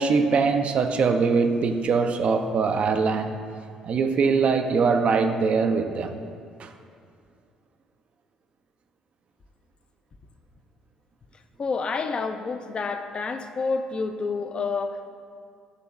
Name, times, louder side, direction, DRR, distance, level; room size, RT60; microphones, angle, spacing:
voice 1, 0.0-3.4 3.8-6.2 6.6-6.7, right 5 dB, 45° right, 6 dB, 0.4 m, -22 dB
voice 2, 11.6-15.1, left 4 dB, 35° left, 7 dB, 0.5 m, -29 dB
8.4 x 2.9 x 4.8 m, 2.3 s
figure-of-eight pair, 50°, 3 cm